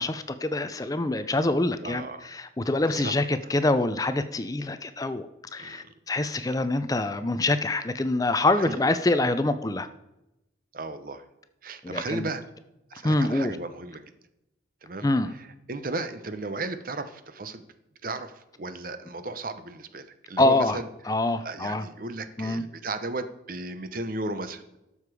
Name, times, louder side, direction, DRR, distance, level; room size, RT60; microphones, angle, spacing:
voice 1, 0.0-9.9 11.8-12.3 13.0-13.6 15.0-15.3 20.4-20.8 21.0-21.8 22.4-22.6, left 2 dB, 20° left, 11 dB, 0.4 m, -25 dB
voice 2, 1.8-2.3 2.9-3.1 5.6-5.9 8.6-8.8 10.7-11.2 11.6-12.4 12.9-14.1 14.8-15.1 15.4-17.6 18.0-20.9 21.4-24.8, right 2 dB, 45° right, 11 dB, 0.8 m, -35 dB
12.5 x 6.8 x 4.8 m, 0.91 s
head